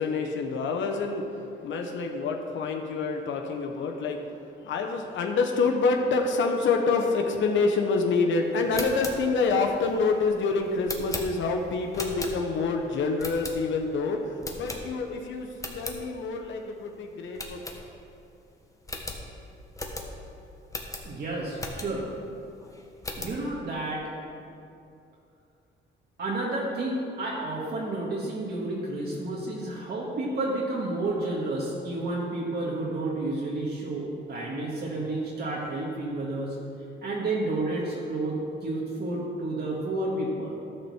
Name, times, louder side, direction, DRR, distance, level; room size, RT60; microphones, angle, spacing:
voice 1, 0.0-15.5 15.7-17.6, left 4 dB, 70° left, 3 dB, 0.9 m, -27 dB
sound 1, 8.6-12.7 13.2-13.9 14.4-15.2 15.5-16.0 16.4-16.5 16.8-16.9 17.3-18.3 18.5-18.6 18.8-22.2 22.6-23.4, left 2 dB, 15° left, 1.3 m, -38 dB
voice 2, 21.0-22.1 23.2-24.1 26.2-36.6 37.0-40.5, right 2 dB, 55° right, -4 dB, 1.7 m, -31 dB
12.5 x 4.4 x 7.0 m, 2.6 s
cardioid pair, 90°, 20 cm